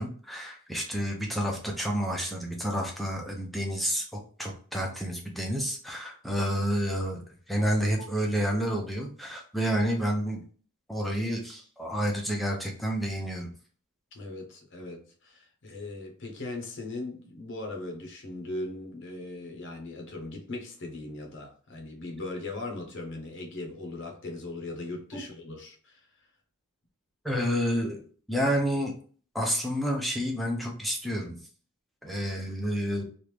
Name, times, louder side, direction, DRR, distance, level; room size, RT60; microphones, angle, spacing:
voice 1, 0.0-4.0 4.4-7.2 7.5-10.4 10.9-13.5 25.1-25.2 27.2-28.0 28.3-28.9 29.3-31.4 32.0-33.0, equal, ahead, 0.6 m, -29 dB
voice 2, 14.1-26.1, left 2 dB, 55° left, 0.7 m, -39 dB
3.1 x 2.5 x 3.3 m
head